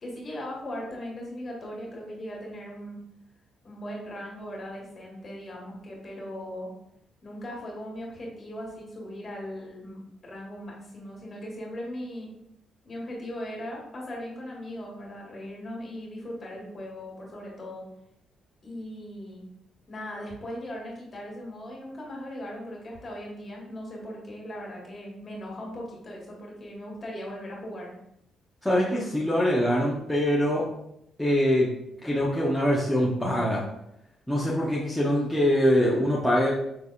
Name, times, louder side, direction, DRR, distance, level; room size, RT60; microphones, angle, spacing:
voice 1, 0.0-3.0 3.6-6.7 7.2-12.3 12.8-17.8 18.6-19.4 19.9-27.9, equal, 35° left, -2 dB, 1.7 m, -38 dB
voice 2, 28.6-30.6 31.2-31.7 32.0-33.6 34.3-36.5, equal, 5° left, -6 dB, 0.8 m, -23 dB
5.5 x 3.3 x 2.4 m, 0.79 s
cardioid pair, 90°, 0 cm